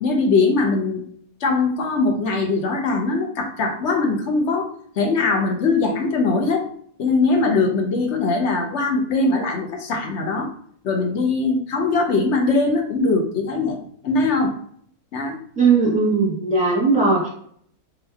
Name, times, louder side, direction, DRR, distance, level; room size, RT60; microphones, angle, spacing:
voice 1, 0.0-1.0 1.4-4.7 5.0-6.6 7.0-10.5 10.8-14.5 15.1-15.4, left 3 dB, 60° left, 2 dB, 0.9 m, -21 dB
voice 2, 15.6-17.3, right 4 dB, 5° right, -5 dB, 1.3 m, -18 dB
3.6 x 3.0 x 3.4 m, 0.62 s
omnidirectional pair, 1.6 m